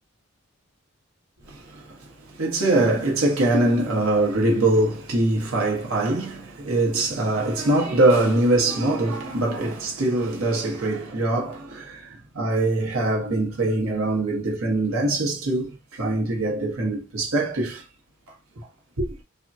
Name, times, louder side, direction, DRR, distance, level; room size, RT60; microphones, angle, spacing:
voice 1, 1.5-17.8 19.0-19.2, right 2 dB, 80° right, 0.9 m, -23 dB
3.4 x 2.2 x 2.6 m
head